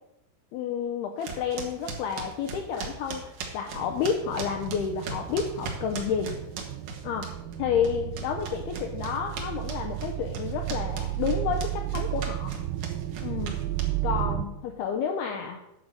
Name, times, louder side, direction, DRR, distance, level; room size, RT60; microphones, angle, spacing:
voice 1, 0.5-6.3 7.0-7.2 7.6-12.5 13.2-13.5 14.0-15.6, left 7 dB, 80° left, 2 dB, 2.3 m, -30 dB
sound 1, 1.2-7.6 7.8-14.2, right 5 dB, 65° right, 2.0 m, -39 dB
sound 2, 3.8-14.5, right 16 dB, 85° right, 2.4 m, -33 dB
9.8 x 5.7 x 6.6 m, 0.88 s
omnidirectional pair, 5.4 m